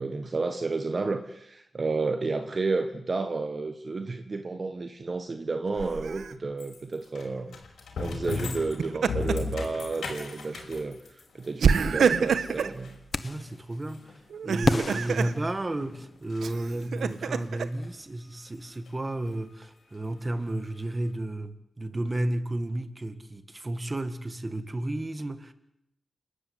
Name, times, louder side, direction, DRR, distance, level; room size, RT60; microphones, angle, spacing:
voice 1, 0.0-7.6 8.0-13.0, right 3 dB, 35° right, 7 dB, 1.5 m, -31 dB
Laughter, 5.8-6.3 8.6-9.5 10.0-10.1 11.6-12.8 14.3-15.3 16.4-17.7, right 6 dB, 85° right, 1.3 m, -26 dB
sound 1, 6.6-15.5 15.8-17.2 17.6-17.9 18.4-18.5 18.9-19.0 19.2-19.3 20.3-20.4 20.6-20.7, left 4 dB, 85° left, 5.6 m, -38 dB
sound 2, 13.1-13.6 14.6-16.2, left 3 dB, 35° left, 1.1 m, -30 dB
voice 2, 13.2-25.5, right 1 dB, 20° right, 10 dB, 1.9 m, -32 dB
29.5 x 13.5 x 9.6 m, 0.79 s
wide cardioid pair, 120°, 0 cm